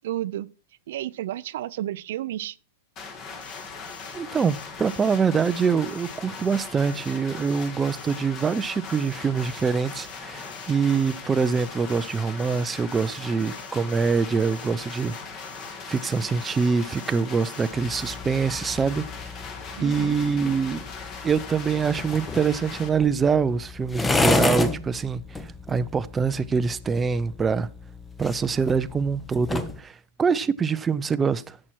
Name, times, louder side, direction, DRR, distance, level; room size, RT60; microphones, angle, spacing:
voice 1, 0.0-0.5 0.9-2.6 19.8-20.2, right 13 dB, 70° right, 0.5 m, -31 dB
sound 1, 3.0-22.9, left 5 dB, 35° left, 2.2 m, -39 dB
Alarm, 3.4-18.2, left 5 dB, 85° left, 2.0 m, -49 dB
voice 2, 4.1-15.1 15.9-19.3 19.8-20.8 21.2-27.7 28.2-31.6, right 5 dB, 15° right, 0.6 m, -24 dB
sound 2, 17.7-29.8, left 3 dB, 10° left, 0.9 m, -31 dB
11.0 x 7.5 x 4.5 m
hypercardioid pair, 125°, 0 cm